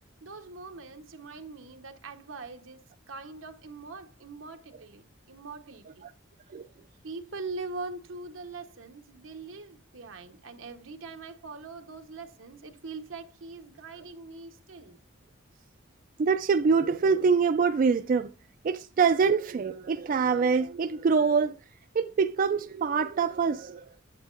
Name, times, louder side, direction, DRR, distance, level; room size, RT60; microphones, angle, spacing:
voice 1, 0.2-6.1 7.0-15.0 15.5-15.7, right 3 dB, 90° right, 1.0 m, -42 dB
voice 2, 16.2-18.3 18.6-21.6 21.9-23.8, right 5 dB, 45° right, 0.3 m, -24 dB
8.8 x 8.1 x 2.5 m
head